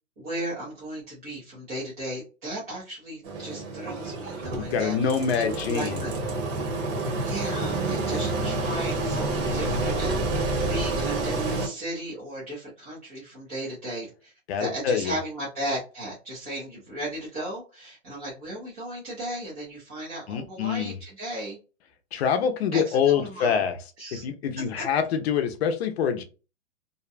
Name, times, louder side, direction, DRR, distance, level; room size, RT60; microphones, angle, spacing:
voice 1, 0.2-4.9 5.4-6.1 7.2-14.3 14.6-21.6 22.7-23.7 24.0-24.2 24.8-24.9, right 1 dB, 15° right, -8 dB, 0.4 m, -35 dB
Engine, 3.2-11.7, right 2 dB, 60° right, 1.0 m, -28 dB
voice 2, 4.6-6.0 14.5-15.1 20.3-20.9 22.1-23.8 24.1-26.2, left 7 dB, 50° left, 8 dB, 0.6 m, -25 dB
2.7 x 2.1 x 2.4 m, 0.32 s
hypercardioid pair, 150°, 41 cm